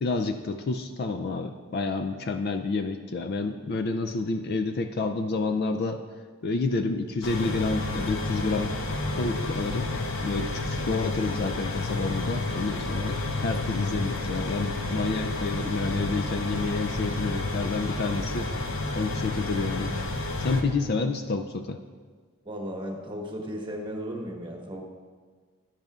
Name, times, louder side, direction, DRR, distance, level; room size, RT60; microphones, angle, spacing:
voice 1, 0.0-6.0 6.4-8.7 9.1-9.9 10.2-18.5 19.0-19.9 20.4-21.8, left 3 dB, 45° left, 8 dB, 0.3 m, -29 dB
sound 1, 7.2-20.6, left 2 dB, 65° left, 0.9 m, -30 dB
voice 2, 22.4-24.8, equal, 20° right, 0 dB, 1.1 m, -35 dB
12.0 x 10.5 x 2.4 m, 1.6 s
head